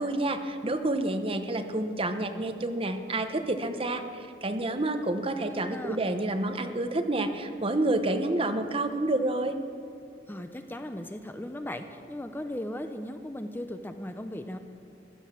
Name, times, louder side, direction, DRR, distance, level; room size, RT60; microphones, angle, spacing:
voice 1, 0.0-9.6, right 2 dB, 30° right, 7 dB, 1.0 m, -29 dB
voice 2, 5.5-6.0 10.3-14.6, left 1 dB, 10° left, 7 dB, 0.6 m, -37 dB
15.5 x 12.0 x 7.5 m, 2.7 s
head